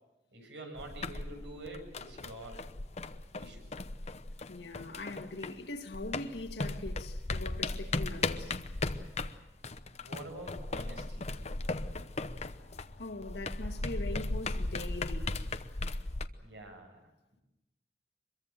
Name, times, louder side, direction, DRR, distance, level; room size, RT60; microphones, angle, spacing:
voice 1, 0.3-2.7 3.4-3.7 10.0-11.3 16.4-17.1, right 1 dB, 85° right, 7.5 m, -47 dB
sound 1, 0.8-5.7 5.9-16.3, left 2 dB, 40° left, 0.9 m, -37 dB
voice 2, 4.5-8.6 13.0-15.4, left 2 dB, 70° left, 2.0 m, -41 dB
24.5 x 22.5 x 7.5 m
head